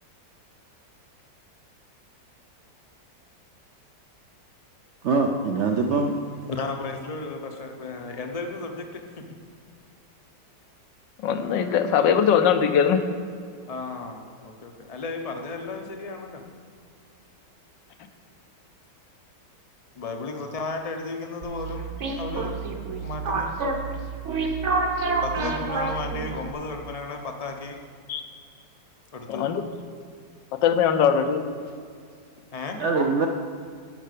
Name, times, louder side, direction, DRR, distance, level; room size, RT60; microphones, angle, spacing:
voice 1, 5.0-6.2 32.8-33.3, right 4 dB, 70° right, 4 dB, 0.6 m, -23 dB
voice 2, 6.5-9.2 13.7-16.4 19.9-22.5 23.0-23.5 25.2-27.8 28.5-28.7 29.1-29.5 32.5-32.8, left 3 dB, 50° left, 4 dB, 0.4 m, -34 dB
voice 3, 11.2-13.0 28.1-28.2 29.3-29.6 30.5-31.4, left 7 dB, 90° left, 8 dB, 1.4 m, -21 dB
sound 1, 21.4-26.5, right 4 dB, 50° right, 1.1 m, -28 dB
10.0 x 6.4 x 6.6 m, 2.1 s
omnidirectional pair, 1.9 m